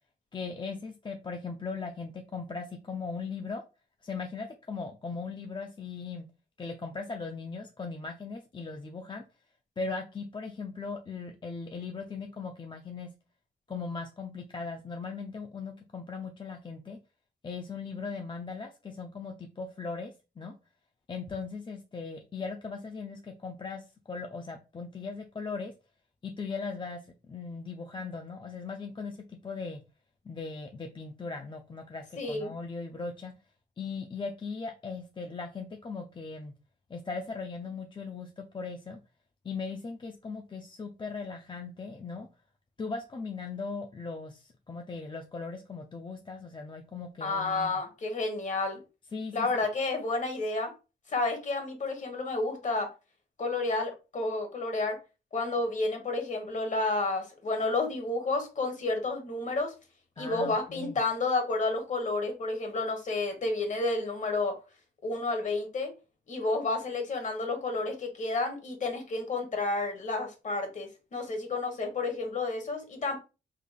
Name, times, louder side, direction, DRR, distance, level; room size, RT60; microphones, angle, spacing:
voice 1, 0.3-3.6 4.0-6.2 6.6-9.2 9.8-13.1 13.7-17.0 17.4-20.5 21.1-25.7 26.2-29.2 29.4-29.8 30.3-33.3 33.8-36.5 36.9-39.0 39.4-42.3 42.8-47.8 49.1-49.5 60.2-61.0, left 4 dB, 25° left, 0.4 m, -38 dB
voice 2, 32.2-32.5 47.2-48.8 49.3-50.7 51.1-52.9 53.4-55.0 55.3-59.7 60.2-64.6 65.0-65.9 66.3-73.2, left 3 dB, 45° left, 1.2 m, -30 dB
3.8 x 3.3 x 2.3 m
cardioid pair, 85°, 18 cm